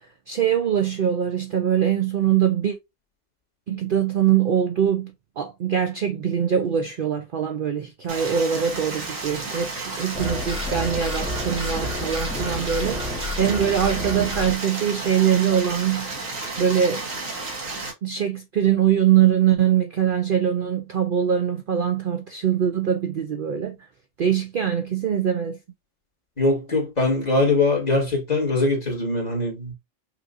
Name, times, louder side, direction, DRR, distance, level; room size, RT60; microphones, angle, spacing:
voice 1, 0.3-2.8 3.7-16.1 16.6-17.0 18.0-23.8 24.2-25.6, right 9 dB, 55° right, 0.6 m, -22 dB
Stream, 8.1-17.9, right 3 dB, 85° right, 1.6 m, -32 dB
sound 1, 10.1-14.5, left 1 dB, 5° right, 1.4 m, -30 dB
voice 2, 26.4-29.7, left 2 dB, 30° left, 1.9 m, -22 dB
5.8 x 2.6 x 2.5 m
omnidirectional pair, 1.3 m